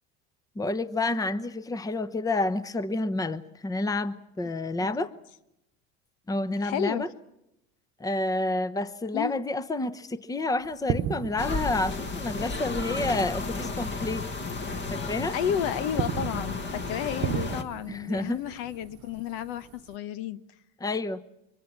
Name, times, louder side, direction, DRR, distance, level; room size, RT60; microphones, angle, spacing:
voice 1, 0.6-5.1 6.3-7.1 8.0-14.2 14.9-15.4 17.9-18.4 20.8-21.2, left 2 dB, 10° left, 0.9 m, -29 dB
voice 2, 6.6-7.0 9.1-9.4 15.1-20.4, left 9 dB, 75° left, 1.2 m, -32 dB
sound 1, 10.7-13.6 13.9-14.1 14.7-15.4 15.8-19.9, right 10 dB, 45° right, 1.1 m, -35 dB
sound 2, 11.4-17.6, left 3 dB, 35° left, 1.9 m, -33 dB
24.5 x 22.5 x 7.3 m
supercardioid pair, 105°, 34 cm